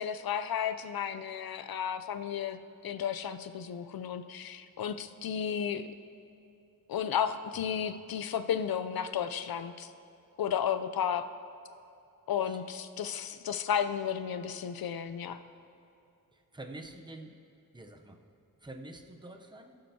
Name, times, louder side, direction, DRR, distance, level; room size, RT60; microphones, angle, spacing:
voice 1, 0.0-5.8 6.9-9.9 10.4-11.3 12.3-15.4, left 8 dB, 70° left, 11 dB, 0.5 m, -33 dB
voice 2, 16.3-17.4 17.7-18.2 18.6-19.8, right 2 dB, 10° right, 4 dB, 0.7 m, -47 dB
19.5 x 7.6 x 2.8 m, 2.7 s
wide cardioid pair, 145°, 37 cm